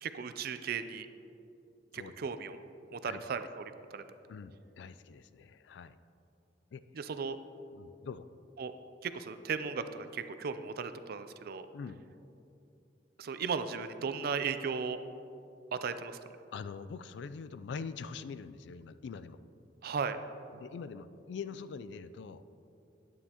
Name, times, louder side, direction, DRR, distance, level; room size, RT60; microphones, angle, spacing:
voice 1, 0.0-1.1 1.9-2.6 2.9-3.6 3.9-4.0 6.9-7.4 8.6-8.7 9.0-11.7 13.2-15.0 15.7-16.2 19.8-20.2, right 5 dB, 55° right, 11 dB, 0.4 m, -36 dB
voice 2, 4.3-6.0 6.7-6.8 7.7-8.3 11.7-12.0 16.5-19.4 20.5-22.6, left 5 dB, 70° left, 14 dB, 0.3 m, -44 dB
9.5 x 9.2 x 2.9 m, 2.7 s
head